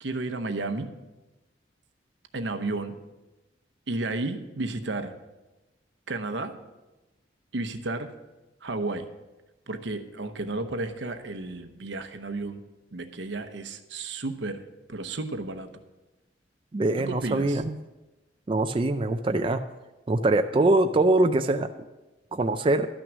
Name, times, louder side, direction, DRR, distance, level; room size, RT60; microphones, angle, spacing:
voice 1, 0.0-0.9 2.3-3.0 3.9-5.1 6.1-6.5 7.5-8.1 8.6-9.1 9.7-12.6 12.9-14.6 14.9-15.7 17.0-17.6, right 2 dB, 80° right, 8 dB, 0.9 m, -32 dB
voice 2, 16.7-17.7 18.5-19.6 20.1-21.7 22.3-22.9, right 2 dB, 30° right, 7 dB, 0.4 m, -23 dB
12.0 x 6.1 x 6.2 m, 1.1 s
head